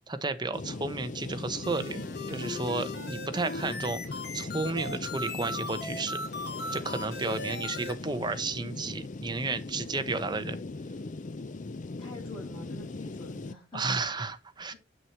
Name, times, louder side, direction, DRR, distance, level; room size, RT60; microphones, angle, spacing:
voice 1, 0.1-2.0 2.3-6.2 6.7-10.6 13.7-14.7, right 3 dB, 25° right, 0.9 m, -32 dB
sound 1, 0.5-13.5, left 3 dB, 45° left, 0.5 m, -39 dB
sound 2, 1.6-7.9, left 2 dB, 60° left, 2.8 m, -38 dB
voice 2, 11.4-14.2, left 1 dB, 25° left, 6.5 m, -48 dB
8.2 x 6.2 x 4.5 m
head